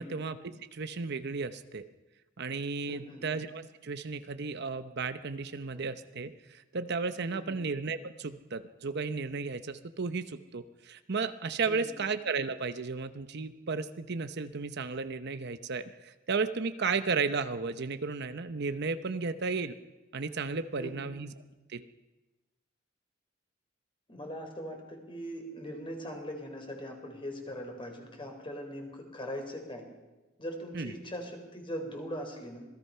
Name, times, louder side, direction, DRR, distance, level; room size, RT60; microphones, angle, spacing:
voice 1, 0.0-1.9 2.4-19.8 20.1-21.3 21.7-21.9 30.7-30.9, right 4 dB, 60° right, 10 dB, 0.8 m, -34 dB
voice 2, 2.9-3.2 5.7-5.9 7.3-7.6 11.7-12.0 20.8-21.1 24.1-29.8 30.4-32.6, equal, 25° left, 3 dB, 4.1 m, -41 dB
26.5 x 19.0 x 5.7 m, 1.1 s
head